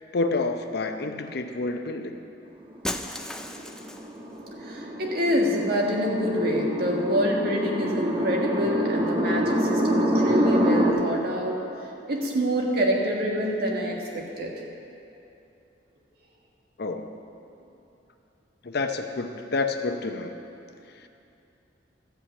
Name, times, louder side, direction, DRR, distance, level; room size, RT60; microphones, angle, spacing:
voice 1, 0.1-2.2 16.8-17.1 18.6-20.3, left 3 dB, 60° left, 6 dB, 0.7 m, -28 dB
Shatter, 2.8-4.2, left 1 dB, 5° left, 0.4 m, -34 dB
sound 1, 2.9-10.9, equal, 30° right, 1.1 m, -26 dB
voice 2, 4.6-11.6 12.1-14.6, equal, 55° right, -1 dB, 1.6 m, -26 dB
12.5 x 5.6 x 8.5 m, 2.8 s
head